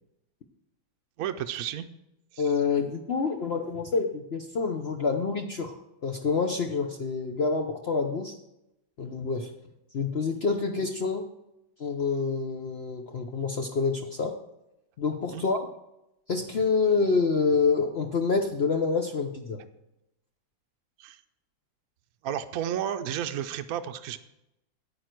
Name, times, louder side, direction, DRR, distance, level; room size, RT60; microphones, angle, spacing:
voice 1, 1.2-1.9 2.3-2.5 15.3-15.4 21.0-21.2 22.2-24.2, right 10 dB, 70° right, 8 dB, 0.9 m, -32 dB
voice 2, 2.4-8.3 9.0-9.5 9.9-11.2 11.8-14.3 15.0-15.7 16.3-19.6, left 4 dB, 55° left, 4 dB, 0.7 m, -27 dB
9.3 x 8.9 x 4.5 m, 0.87 s
omnidirectional pair, 2.0 m